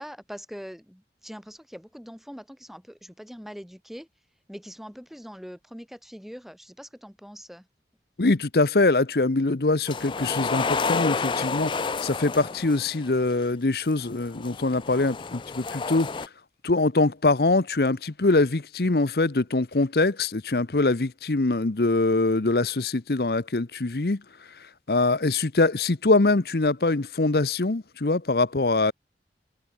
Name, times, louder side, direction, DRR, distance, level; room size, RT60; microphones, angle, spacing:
voice 1, 0.0-4.1 4.5-7.7, equal, ahead, 6.1 m, -42 dB
voice 2, 8.2-16.1 16.6-24.2 24.9-28.9, left 2 dB, 60° left, 0.9 m, -23 dB
sound 1, 9.9-13.2 14.1-16.3, left 4 dB, 25° left, 0.4 m, -30 dB
head